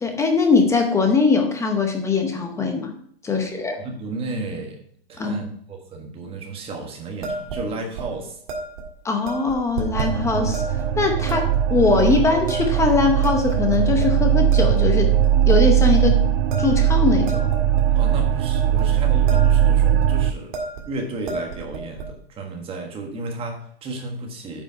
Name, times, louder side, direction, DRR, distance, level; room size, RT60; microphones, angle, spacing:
voice 1, 0.0-2.9 3.2-3.8 5.2-5.4 9.0-10.6 11.0-15.1 15.4-16.2 16.6-17.5, left 4 dB, 10° left, 5 dB, 0.7 m, -21 dB
voice 2, 3.3-4.8 5.1-8.4 17.9-20.6 20.9-24.6, right 2 dB, 20° right, 2 dB, 1.4 m, -33 dB
sound 1, 7.2-7.6 8.0-8.1 8.5-8.8 9.3-10.1 10.5-10.9 11.3-11.6 12.0-12.1 12.5-13.0 13.2-14.1 14.5-14.9 15.2-15.6 15.9-16.1 16.5-18.1 18.5-18.9 19.1-19.6 19.9-20.1 20.5-20.9 21.1-22.1, right 3 dB, 50° right, 1.9 m, -31 dB
sound 2, 9.9-20.3, right 10 dB, 80° right, 0.6 m, -19 dB
9.0 x 5.3 x 4.6 m, 0.64 s
hypercardioid pair, 150°, 30 cm